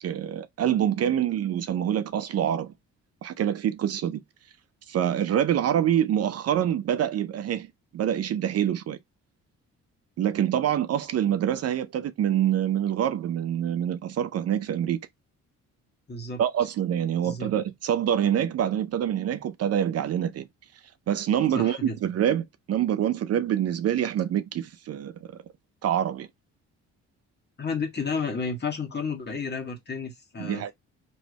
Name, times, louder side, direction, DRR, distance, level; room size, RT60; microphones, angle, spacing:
voice 1, 0.0-2.7 3.2-4.2 4.9-9.0 10.2-15.0 16.4-20.5 21.1-25.3 25.8-26.3 30.4-30.7, right 10 dB, 55° right, 0.5 m, -26 dB
voice 2, 16.1-16.4 17.2-17.5 21.5-22.0 27.6-30.7, left 4 dB, 35° left, 1.6 m, -31 dB
3.1 x 3.1 x 3.9 m
cardioid pair, 90°, 30 cm